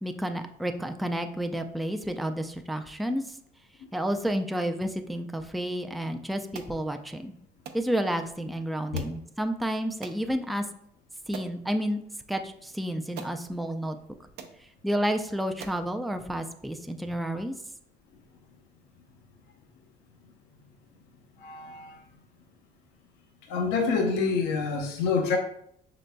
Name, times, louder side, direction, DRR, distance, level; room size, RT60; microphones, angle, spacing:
voice 1, 0.0-3.4 3.9-7.3 7.7-10.6 11.3-12.0 12.3-14.0 14.8-17.5, equal, ahead, 6 dB, 0.3 m, -30 dB
sound 1, 6.5-6.8 7.6-7.8 8.9-9.2 10.0-10.2 10.8-10.9 11.3-11.6 12.6-12.7 13.1-13.4 14.0-14.1 14.4-14.6 15.2-15.3 15.6-15.9, right 6 dB, 75° right, 0.6 m, -42 dB
voice 2, 21.4-22.0 23.5-25.4, left 4 dB, 90° left, 2 dB, 0.7 m, -27 dB
6.1 x 3.9 x 2.2 m, 0.70 s
cardioid pair, 110°, 17 cm